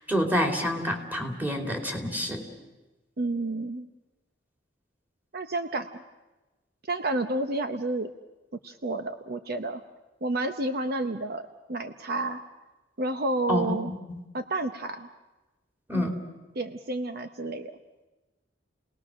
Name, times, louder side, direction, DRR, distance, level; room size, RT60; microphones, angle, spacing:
voice 1, 0.1-2.5 13.5-14.2 15.9-16.2, equal, 10° right, 2 dB, 3.1 m, -28 dB
voice 2, 3.2-3.9 5.3-6.0 6.9-8.1 8.6-9.8 10.2-12.4 13.0-13.9 14.3-15.1 15.9-16.1 16.6-17.7, right 2 dB, 55° right, 8 dB, 0.9 m, -30 dB
30.0 x 19.5 x 6.3 m, 1.1 s
head